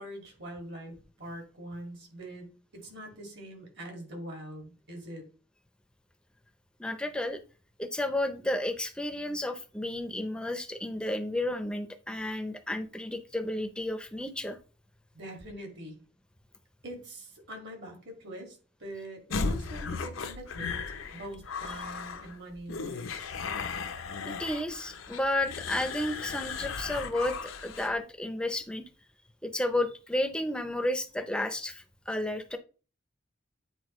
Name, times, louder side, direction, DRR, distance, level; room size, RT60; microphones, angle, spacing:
voice 1, 0.0-2.5 2.7-5.2 15.1-16.0 16.8-23.4, right 1 dB, 60° right, 2.1 m, -43 dB
voice 2, 6.8-7.4 7.8-14.6 24.3-28.8 29.4-32.6, left 1 dB, 5° left, 0.5 m, -32 dB
sound 1, 19.3-28.0, left 4 dB, 90° left, 0.7 m, -36 dB
8.3 x 4.3 x 3.1 m
head